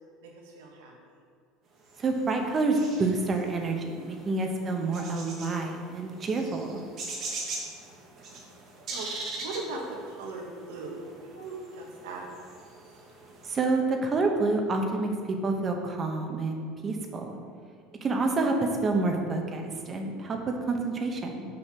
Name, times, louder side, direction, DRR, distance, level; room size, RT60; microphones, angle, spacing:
voice 1, 0.2-0.9 4.3-4.8 7.0-7.7 8.2-8.3 8.9-9.1 9.4-11.0 11.3-12.5 17.5-18.0, right 3 dB, 90° right, 0 dB, 1.5 m, -40 dB
sound 1, 1.9-13.7, right 3 dB, 45° right, 1.5 m, -42 dB
voice 2, 2.0-6.8 13.4-17.4 18.0-21.5, right 3 dB, 30° right, 3 dB, 1.0 m, -28 dB
5.7 x 5.5 x 5.8 m, 2.2 s
supercardioid pair, 110°, 0 cm